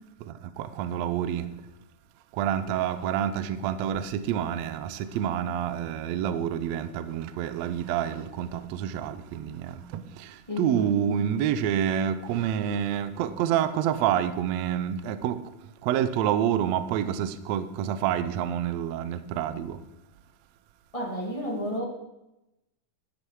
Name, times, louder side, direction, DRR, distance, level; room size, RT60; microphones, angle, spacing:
voice 1, 0.2-1.5 2.3-19.8, right 9 dB, 85° right, 1.5 m, -28 dB
voice 2, 10.5-11.1 20.9-21.8, equal, 20° left, 1.0 m, -32 dB
12.5 x 9.9 x 4.7 m
omnidirectional pair, 4.0 m